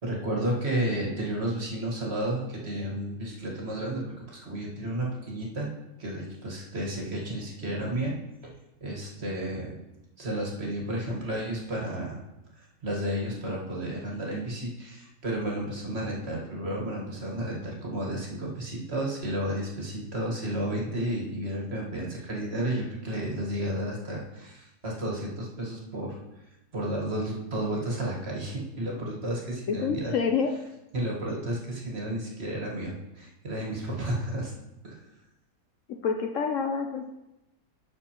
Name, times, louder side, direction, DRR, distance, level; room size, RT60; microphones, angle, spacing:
voice 1, 0.0-5.7 6.0-8.2 8.4-8.5 8.8-9.7 10.2-12.2 12.6-26.2 26.7-30.2 30.9-34.5 34.8-35.0, right 1 dB, 40° right, -2 dB, 1.7 m, -32 dB
voice 2, 29.7-30.5 36.0-37.1, left 6 dB, 65° left, 4 dB, 0.9 m, -27 dB
11.5 x 6.0 x 3.0 m, 0.92 s
omnidirectional pair, 1.7 m